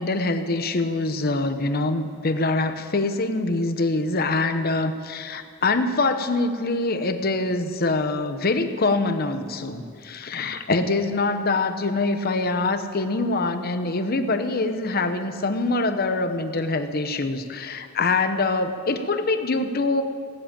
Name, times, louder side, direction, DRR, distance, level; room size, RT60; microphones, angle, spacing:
voice 1, 0.0-20.0, left 3 dB, 50° left, 8 dB, 0.9 m, -24 dB
17.5 x 7.7 x 8.7 m, 2.1 s
head